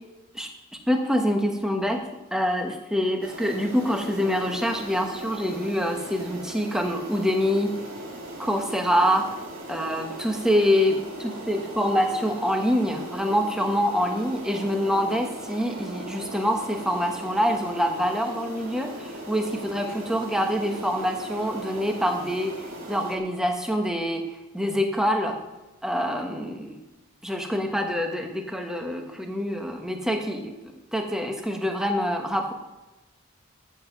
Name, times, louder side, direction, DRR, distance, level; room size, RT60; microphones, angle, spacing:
voice 1, 0.9-2.0 2.3-7.7 8.4-9.3 9.7-24.2 24.5-25.4 25.8-26.8 27.2-30.5 30.9-32.5, equal, 5° right, 3 dB, 1.2 m, -25 dB
sound 1, 3.2-23.2, right 1 dB, 80° right, 2.6 m, -38 dB
13.5 x 7.3 x 5.9 m, 1.1 s
head